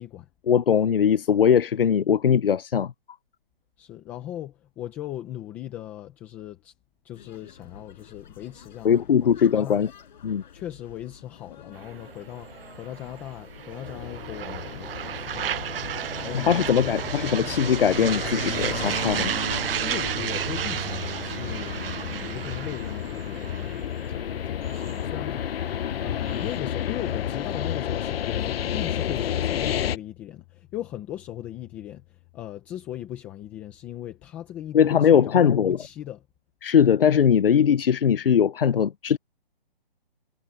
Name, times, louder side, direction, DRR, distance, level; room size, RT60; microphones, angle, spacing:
voice 1, 0.5-2.9 8.8-9.9 10.2-10.4 16.3-19.3 34.7-35.8 36.6-39.2, left 8 dB, 75° left, 0.9 m, -20 dB
voice 2, 3.8-6.7 7.0-9.9 10.5-15.7 16.2-16.9 19.8-23.8 24.1-25.7 26.0-36.2, left 12 dB, 5° left, 0.6 m, -38 dB
sound 1, 7.1-21.1, left 8 dB, 50° left, 6.8 m, -49 dB
sound 2, 11.8-26.6, right 10 dB, 75° right, 0.5 m, -33 dB
sound 3, 13.8-30.0, left 10 dB, 90° left, 0.4 m, -31 dB
hypercardioid pair, 165°, 29 cm